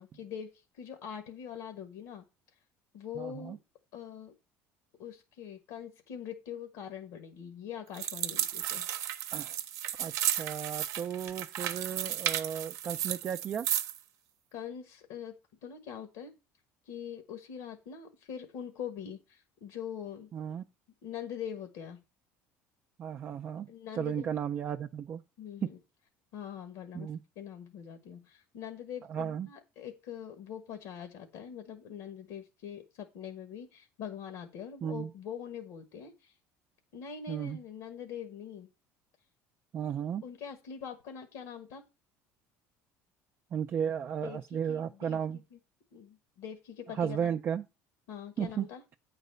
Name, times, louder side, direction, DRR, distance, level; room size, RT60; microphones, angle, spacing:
voice 1, 0.0-2.2 2.9-3.6 3.9-4.3 5.0-8.9 14.5-16.3 16.8-20.3 21.0-22.0 23.7-24.3 25.4-25.8 26.3-27.1 27.3-36.3 36.9-38.7 40.2-41.8 44.2-45.2 45.5-45.6 45.9-47.3 48.1-48.8, left 8 dB, 75° left, 1.4 m, -43 dB
voice 2, 3.2-3.6 9.3-9.6 10.0-13.7 20.3-20.6 23.0-23.7 23.9-25.2 25.6-25.7 26.9-27.2 29.1-29.5 34.8-35.1 37.3-37.6 39.7-40.2 43.5-45.4 46.9-47.6 48.4-48.7, right 8 dB, 35° right, 0.4 m, -34 dB
sound 1, 7.9-14.0, right 11 dB, 60° right, 0.7 m, -34 dB
8.6 x 4.1 x 6.7 m
cardioid pair, 130°, 6 cm